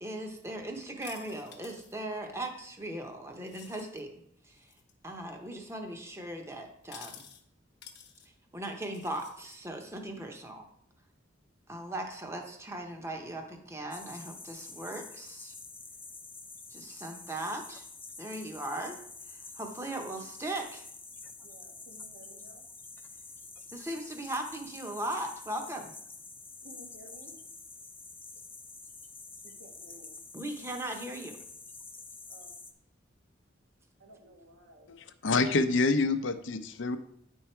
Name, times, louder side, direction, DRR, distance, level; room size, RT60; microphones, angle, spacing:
voice 1, 0.0-4.1 4.4-4.7 5.0-7.2 8.5-10.7 11.7-15.5 16.7-17.8 18.2-19.0 19.3-20.8 23.7-25.9 30.3-31.4, right 1 dB, 15° right, 3 dB, 0.9 m, -38 dB
sound 1, 1.0-2.0 3.4-4.0 4.6-4.9 6.8-7.4 7.8-8.3 8.8-9.6, left 8 dB, 55° left, 1.0 m, -51 dB
sound 2, 13.9-32.7, left 4 dB, 10° left, 0.6 m, -48 dB
voice 2, 21.4-22.6 26.6-27.3 29.4-30.2 32.3-32.5 34.0-34.9, right 1 dB, 90° right, 2 dB, 1.6 m, -54 dB
voice 3, 34.9-37.0, left 3 dB, 70° left, 10 dB, 0.6 m, -27 dB
9.4 x 4.6 x 4.5 m, 0.70 s
head